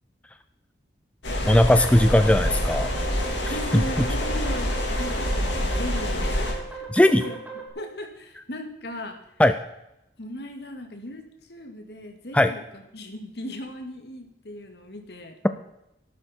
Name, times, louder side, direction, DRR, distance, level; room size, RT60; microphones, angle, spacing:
sound 1, 1.2-6.5, left 1 dB, 80° left, 3.5 m, -26 dB
sound 2, 1.4-7.7, right 5 dB, 10° right, 3.5 m, -38 dB
voice 1, 1.5-2.9 3.5-3.8 6.9-7.2 9.4-9.5 12.3-12.5, left 1 dB, 5° left, 10 dB, 0.4 m, -18 dB
voice 2, 3.5-7.4 7.7-9.2 10.2-12.6 12.9-15.4, left 1 dB, 60° left, 5 dB, 2.1 m, -37 dB
13.5 x 11.5 x 4.4 m, 0.86 s
head